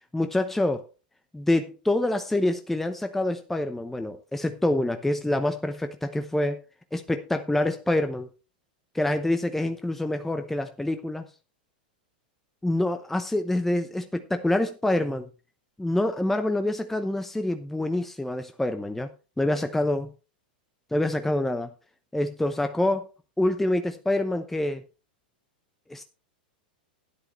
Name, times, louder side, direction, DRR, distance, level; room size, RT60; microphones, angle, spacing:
voice 1, 0.1-0.9 1.3-6.6 6.9-8.3 8.9-11.3 12.6-15.3 15.8-19.1 19.4-20.1 20.9-21.7 22.1-23.1 23.4-24.8 25.9-26.0, left 1 dB, 5° left, 8 dB, 0.8 m, -26 dB
12.5 x 10.5 x 3.1 m, 0.32 s
hypercardioid pair, 105°, 5 cm